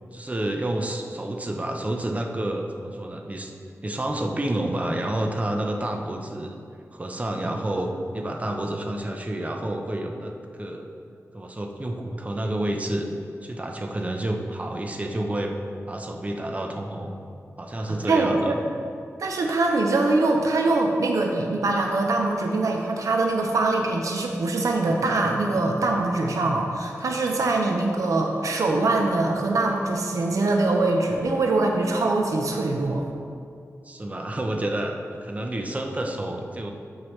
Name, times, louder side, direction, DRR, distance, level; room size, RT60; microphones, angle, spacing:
voice 1, 0.1-3.5 3.8-6.6 6.9-10.9 11.3-13.1 13.4-15.5 15.9-17.1 17.6-18.6 33.8-34.9 35.2-36.7, right 1 dB, 25° right, 2 dB, 0.7 m, -29 dB
voice 2, 18.0-18.6 19.2-33.0, right 2 dB, 85° right, 2 dB, 0.7 m, -23 dB
13.0 x 4.8 x 3.2 m, 2.4 s
wide cardioid pair, 85°, 5 cm